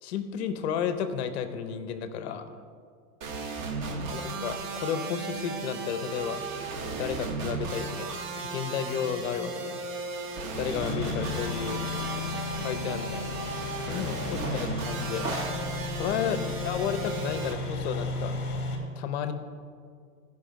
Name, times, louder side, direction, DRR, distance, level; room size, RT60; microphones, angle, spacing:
voice 1, 0.0-2.5 4.1-6.4 6.8-8.2 8.5-9.8 10.5-11.8 12.6-13.4 13.8-15.3 15.9-18.4 19.0-19.3, left 8 dB, 45° left, 10 dB, 0.7 m, -32 dB
sound 1, 3.2-17.5, right 4 dB, 55° right, 1.4 m, -35 dB
voice 2, 3.8-4.4 11.6-12.5 16.2-16.8, right 4 dB, 80° right, 0 dB, 2.5 m, -48 dB
sound 2, 10.7-18.8, left 4 dB, 20° left, 1.7 m, -35 dB
sound 3, 11.2-11.4 11.9-12.3 12.6-13.4 14.3-14.8 15.1-17.0, right 1 dB, 25° right, 2.4 m, -39 dB
14.0 x 5.4 x 5.1 m, 2.1 s
hypercardioid pair, 135°, 48 cm